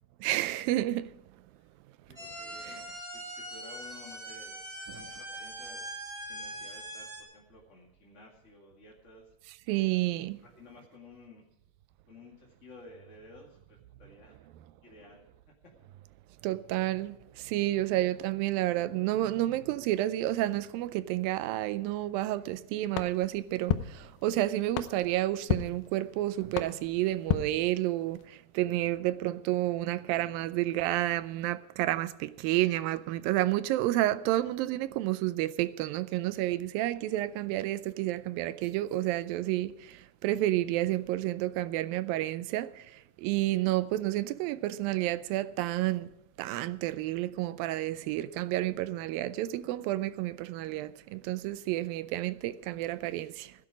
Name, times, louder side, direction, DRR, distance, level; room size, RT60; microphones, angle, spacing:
voice 1, 0.2-1.1 2.7-2.8 9.7-10.4 16.4-46.1 46.4-53.5, right 15 dB, 80° right, 2.2 m, -30 dB
voice 2, 2.1-2.9 3.1-4.6 4.9-5.8 6.3-9.3 10.4-11.4 12.1-14.4 14.8-15.2, left 2 dB, 30° left, 1.5 m, -53 dB
sound 1, 2.2-7.2, right 1 dB, 20° right, 3.3 m, -42 dB
sound 2, 22.9-28.3, left 11 dB, 90° left, 2.8 m, -35 dB
16.0 x 10.5 x 4.9 m
omnidirectional pair, 4.4 m